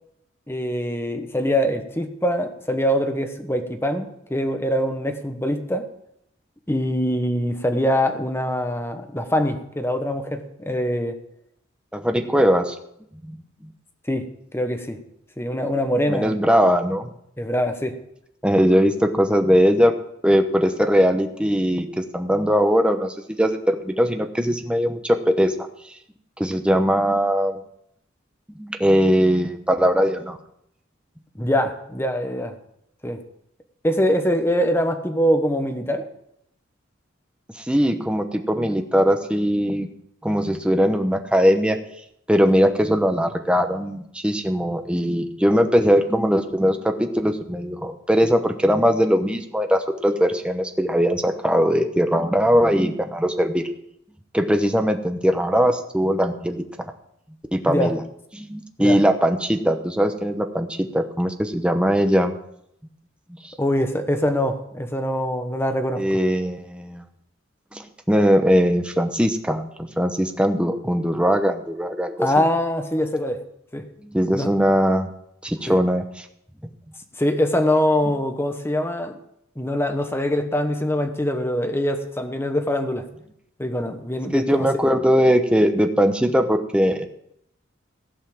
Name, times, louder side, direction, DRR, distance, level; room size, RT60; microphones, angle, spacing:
voice 1, 0.5-5.9 6.7-11.1 12.2-12.3 14.1-14.3 14.5-15.0 15.4-16.4 17.4-18.0 31.3-32.5 33.0-33.2 33.8-36.1 57.6-57.9 58.8-59.0 63.6-66.2 72.2-73.4 73.7-73.9 74.3-74.5 75.7-75.8 77.2-79.2 79.6-83.0 83.6-84.7, equal, 10° left, 6 dB, 1.1 m, -23 dB
voice 2, 11.9-12.7 13.2-13.4 13.6-13.7 16.1-17.1 18.4-19.9 20.2-25.5 26.4-27.6 28.6-30.4 37.6-39.9 40.2-41.8 42.3-53.6 54.3-56.6 57.5-58.0 58.3-62.3 63.4-63.5 66.0-67.0 67.7-72.3 74.0-75.1 75.4-76.0 84.3-87.1, equal, 5° right, 6 dB, 0.9 m, -20 dB
15.5 x 5.6 x 7.1 m, 0.75 s
head